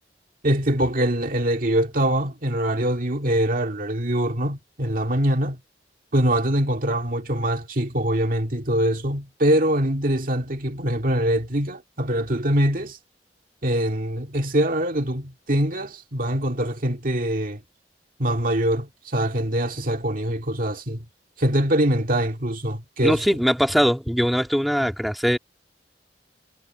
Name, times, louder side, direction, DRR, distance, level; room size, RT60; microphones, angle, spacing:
voice 1, 0.4-5.6 6.1-13.0 13.6-17.6 18.2-21.1 21.4-23.2, right 1 dB, 50° right, 2.1 m, -23 dB
voice 2, 23.0-25.4, equal, ahead, 1.8 m, -21 dB
head